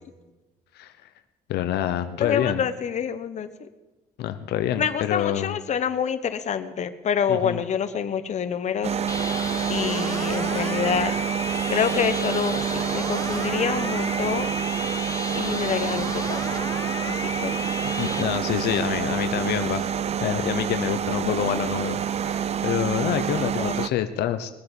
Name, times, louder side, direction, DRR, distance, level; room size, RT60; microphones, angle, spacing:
voice 1, 1.5-2.6 4.2-5.6 7.3-7.6 17.8-24.5, left 11 dB, 75° left, 10 dB, 0.9 m, -27 dB
voice 2, 2.2-3.7 4.8-11.1 11.7-14.6 15.3-16.4 17.1-17.7 23.6-23.7, left 7 dB, 45° left, 10 dB, 1.1 m, -27 dB
sound 1, 8.8-23.9, right 8 dB, 40° right, 0.6 m, -27 dB
sound 2, 9.1-18.2, left 4 dB, 20° left, 0.6 m, -34 dB
21.0 x 7.9 x 7.1 m, 1.1 s
cardioid pair, 110°, 17 cm